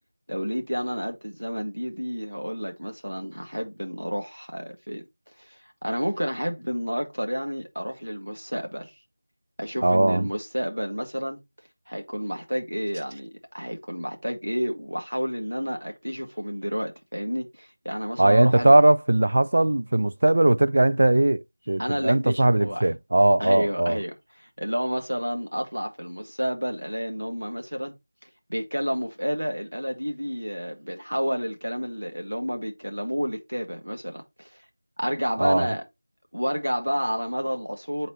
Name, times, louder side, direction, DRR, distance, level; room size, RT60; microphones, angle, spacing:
voice 1, 0.3-5.0 5.5-8.9 9.6-11.4 11.9-18.7 21.8-22.9 23.4-24.1 24.4-27.9 28.5-34.5 35.0-35.8 36.3-38.1, equal, 85° right, 1.8 m, -30 dB
voice 2, 9.8-10.3 18.2-24.0 35.4-35.7, right 1 dB, 50° right, 0.3 m, -19 dB
8.2 x 3.9 x 3.1 m
figure-of-eight pair, 170°, 0 cm